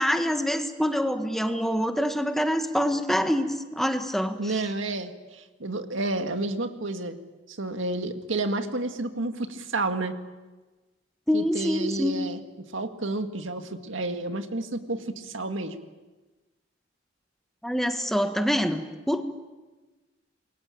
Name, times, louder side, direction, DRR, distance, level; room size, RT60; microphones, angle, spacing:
voice 1, 0.0-4.5 11.3-12.2 17.6-19.2, equal, ahead, 6 dB, 1.6 m, -26 dB
voice 2, 4.4-7.2 7.5-10.1 11.3-12.4 12.7-15.7, right 2 dB, 80° right, 7 dB, 2.0 m, -30 dB
28.0 x 22.5 x 8.8 m, 1.2 s
head